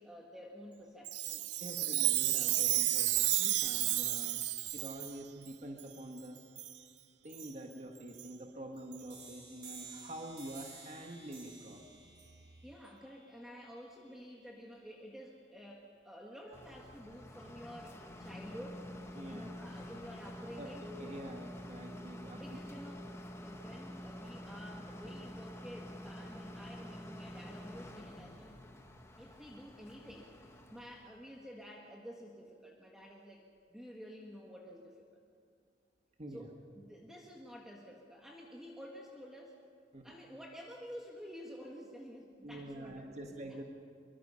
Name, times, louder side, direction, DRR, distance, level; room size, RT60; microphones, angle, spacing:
voice 1, 0.0-1.5 1.8-2.1 12.6-18.9 19.3-20.8 22.3-23.0 23.4-28.6 29.2-30.3 30.7-35.0 36.3-36.5 36.7-39.6 40.0-43.6, equal, 5° right, -2 dB, 1.7 m, -50 dB
Chime, 1.0-5.1 5.8-5.9 6.6-6.8 7.3-7.5 8.2-8.3 8.9-9.0 9.7-9.8, right 15 dB, 65° right, 0.6 m, -32 dB
voice 2, 1.6-6.4 7.2-12.0 19.2-19.5 20.6-22.4 36.2-36.5 39.9-40.1 42.4-43.6, right 1 dB, 35° right, 2 dB, 1.5 m, -46 dB
sound 1, 9.1-14.5, right 4 dB, 85° right, 5.7 m, -54 dB
sound 2, 16.5-31.2, left 1 dB, 15° left, 1.3 m, -48 dB
24.5 x 23.5 x 5.7 m, 2.2 s
head